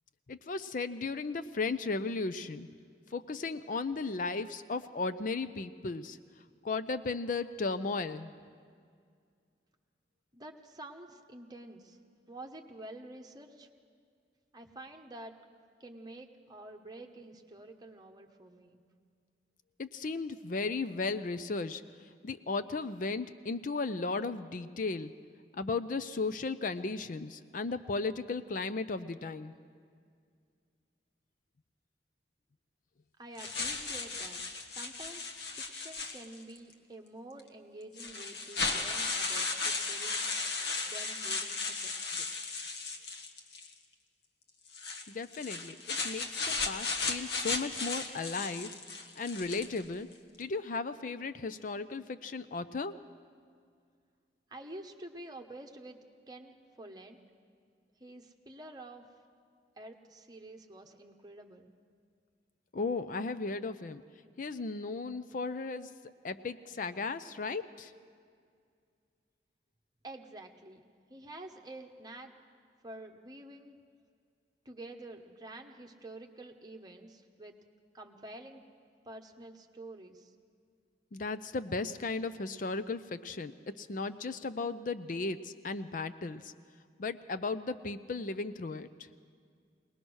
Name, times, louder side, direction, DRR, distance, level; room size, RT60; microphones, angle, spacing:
voice 1, 0.3-2.7 3.1-6.2 6.6-8.3 19.8-21.8 22.2-25.1 25.5-29.5 45.1-48.8 49.2-50.1 50.4-53.0 62.7-64.0 64.4-65.9 66.2-67.9 81.1-86.5 87.0-88.9, left 3 dB, 50° left, 12 dB, 0.5 m, -35 dB
voice 2, 10.3-12.0 12.3-13.7 14.5-15.3 15.8-18.8 33.2-34.4 34.7-35.3 35.6-40.2 40.8-42.3 54.5-56.0 56.3-57.2 58.0-59.0 59.8-61.7 70.0-70.8 71.1-72.3 72.8-73.8 74.6-77.5 77.9-78.6 79.0-80.3, right 1 dB, 25° right, 3 dB, 1.2 m, -48 dB
sound 1, 33.4-36.6 37.4-37.5 38.0-43.7 44.7-49.8, left 4 dB, 70° left, 1.4 m, -35 dB
21.5 x 19.5 x 6.3 m, 2.2 s
head